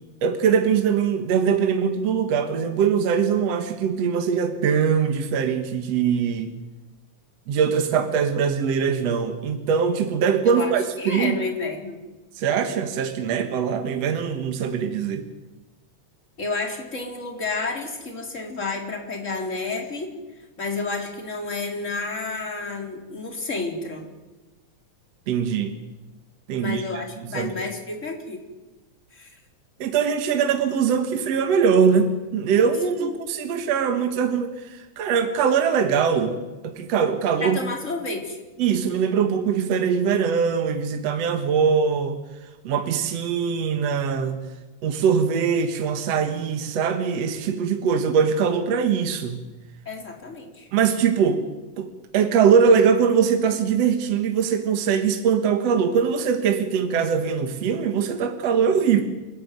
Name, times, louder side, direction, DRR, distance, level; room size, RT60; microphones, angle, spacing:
voice 1, 0.2-6.6 7.5-11.4 12.4-15.2 25.3-25.7 26.5-26.8 27.2-27.5 29.8-37.6 38.6-42.2 42.6-44.4 44.8-49.4 50.7-51.4 51.8-59.0, right 6 dB, 60° right, 6 dB, 2.5 m, -22 dB
voice 2, 11.0-12.0 16.4-20.1 20.6-24.1 26.6-28.4 29.1-29.3 33.0-33.2 37.4-38.4 49.9-50.7, left 3 dB, 25° left, 2 dB, 4.0 m, -30 dB
28.5 x 14.5 x 9.4 m, 1.2 s
omnidirectional pair, 3.4 m